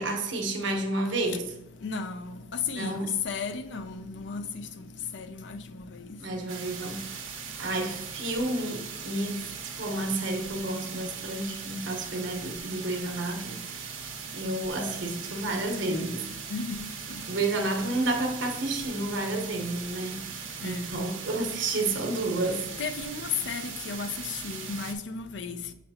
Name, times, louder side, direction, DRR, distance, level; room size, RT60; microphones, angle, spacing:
voice 1, 0.0-1.5 2.8-3.1 6.2-7.2 7.6-9.5 9.7-13.6 14.3-16.3 17.3-20.3 20.6-22.7, right 2 dB, 70° right, 3 dB, 1.1 m, -30 dB
voice 2, 1.8-4.4 5.1-5.6 16.5-16.9 20.6-20.9 22.8-25.6, left 5 dB, 60° left, 10 dB, 0.5 m, -34 dB
sound 1, 6.5-24.9, right 6 dB, 90° right, 1.1 m, -40 dB
6.7 x 5.1 x 2.8 m, 0.85 s
head